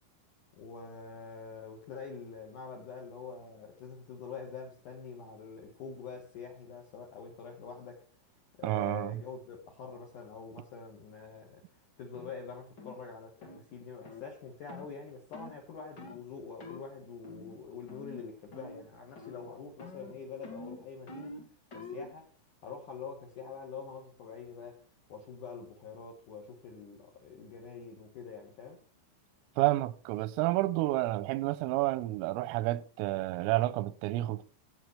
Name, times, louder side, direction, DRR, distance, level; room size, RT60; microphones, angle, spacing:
voice 1, 0.6-8.0 8.6-11.6 12.0-21.3 21.7-22.3 22.6-24.8 25.1-28.8, left 5 dB, 70° left, 1.9 m, -45 dB
voice 2, 8.6-9.2 29.6-34.4, right 17 dB, 90° right, 3.3 m, -30 dB
sound 1, 12.1-12.3 12.8-13.0 13.4-13.6 14.0-14.3 14.7-14.9 15.3-15.6 16.0-16.2 16.6-16.8 17.2-17.6 17.9-18.2 18.5-18.9 19.2-19.5 19.8-22.1, left 3 dB, 50° left, 1.3 m, -46 dB
16.5 x 7.2 x 3.3 m
omnidirectional pair, 5.8 m